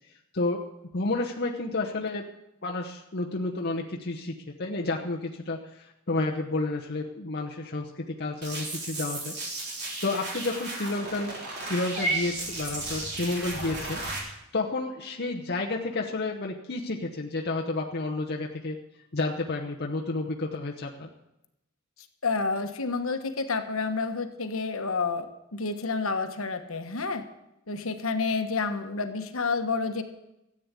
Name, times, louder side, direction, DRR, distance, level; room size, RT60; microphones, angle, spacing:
voice 1, 0.9-2.2 2.6-9.3 10.0-11.4 11.6-18.8 19.1-21.1, left 2 dB, 45° left, 0 dB, 1.0 m, -31 dB
sound 1, 8.4-14.2, right 2 dB, 50° right, 3.8 m, -36 dB
Purr / Meow, 11.9-14.2, right 1 dB, 30° right, 1.6 m, -34 dB
voice 2, 22.2-25.3 25.5-27.2 27.7-30.0, left 4 dB, 60° left, 7 dB, 1.3 m, -29 dB
14.0 x 8.8 x 8.2 m, 0.90 s
head